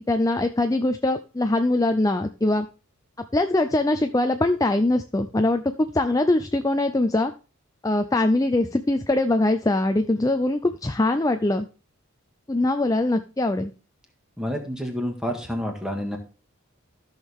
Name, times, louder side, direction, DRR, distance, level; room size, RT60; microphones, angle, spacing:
voice 1, 0.1-2.7 3.3-7.3 7.8-11.7 12.5-13.7, left 2 dB, 15° left, 8 dB, 0.4 m, -22 dB
voice 2, 14.4-16.2, equal, 5° right, 2 dB, 1.8 m, -29 dB
14.0 x 6.5 x 3.6 m, 0.33 s
head